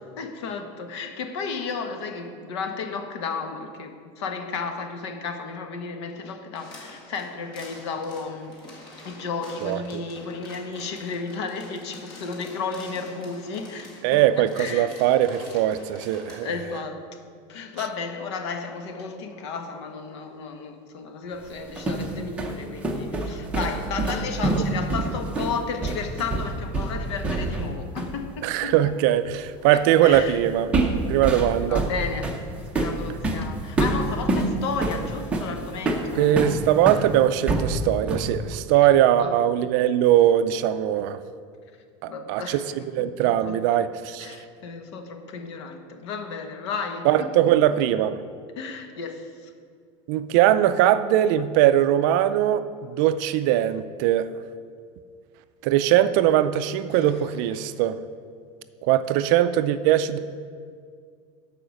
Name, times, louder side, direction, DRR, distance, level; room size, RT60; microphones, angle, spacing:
voice 1, 0.2-8.5 9.0-14.9 16.4-17.1 17.5-28.7 29.7-30.4 31.6-36.4 37.4-37.5 38.5-38.9 39.2-39.3 42.1-42.7 43.0-43.6 44.2-47.5 48.6-49.5 56.9-57.1, left 5 dB, 75° left, 6 dB, 1.2 m, -33 dB
sound 1, 6.6-16.6, left 1 dB, 30° left, 1.8 m, -46 dB
voice 2, 9.6-10.0 14.0-16.5 24.6-24.7 28.4-30.7 31.1-31.8 36.2-41.2 42.0-42.6 42.9-44.3 47.1-48.2 50.1-54.3 55.6-58.0 58.8-60.2, right 12 dB, 45° right, 12 dB, 0.4 m, -21 dB
sound 2, 21.5-27.7 28.0-28.2 30.1-30.4 30.7-37.1 37.5-38.4, right 2 dB, 10° right, 0.7 m, -26 dB
12.0 x 5.0 x 6.3 m, 2.1 s
supercardioid pair, 180°, 15 cm